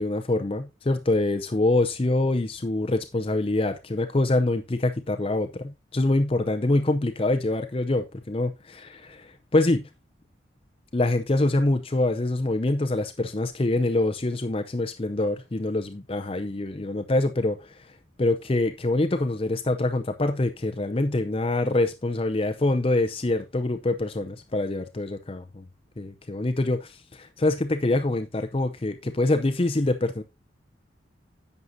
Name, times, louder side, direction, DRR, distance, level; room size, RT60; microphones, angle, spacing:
voice 1, 0.0-9.9 10.9-17.9 18.2-25.6 26.0-30.2, left 2 dB, 30° left, 0.6 m, -25 dB
11.0 x 7.9 x 2.7 m
head